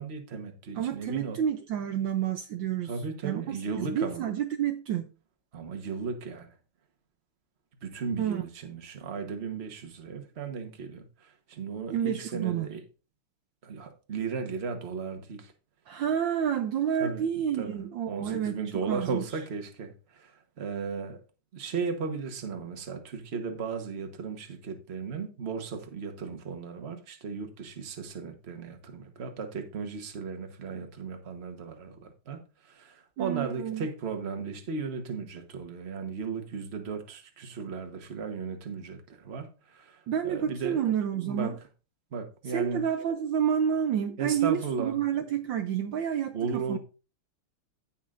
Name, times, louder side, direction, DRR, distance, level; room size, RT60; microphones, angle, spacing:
voice 1, 0.0-1.4 2.9-4.2 5.5-6.5 7.8-12.8 13.6-15.5 17.0-17.2 17.6-17.8 18.1-21.2 21.5-40.9 41.2-41.5 42.1-42.8 44.2-45.0 46.3-46.8, right 5 dB, 35° right, 1.2 m, -36 dB
voice 2, 0.8-2.9 3.2-5.1 8.2-8.4 11.9-12.7 15.9-18.6 18.9-19.2 33.2-33.9 40.1-41.6 42.5-46.8, right 9 dB, 70° right, 1.3 m, -29 dB
16.0 x 5.6 x 2.5 m
omnidirectional pair, 2.3 m